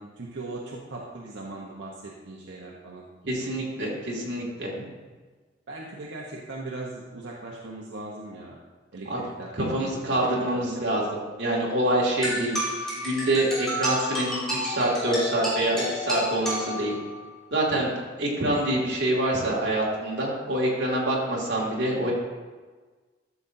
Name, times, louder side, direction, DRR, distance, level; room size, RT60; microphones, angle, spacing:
voice 1, 0.0-3.1 5.7-8.6 8.9-10.8 12.2-12.5, right 2 dB, 85° right, -3 dB, 1.0 m, -39 dB
voice 2, 3.2-4.7 9.1-9.2 9.6-12.5 12.9-16.9 17.5-22.1, right 1 dB, 65° right, -4 dB, 2.3 m, -26 dB
sound 1, 12.2-17.2, equal, 5° left, 2.9 m, -30 dB
12.5 x 7.2 x 2.7 m, 1.4 s
head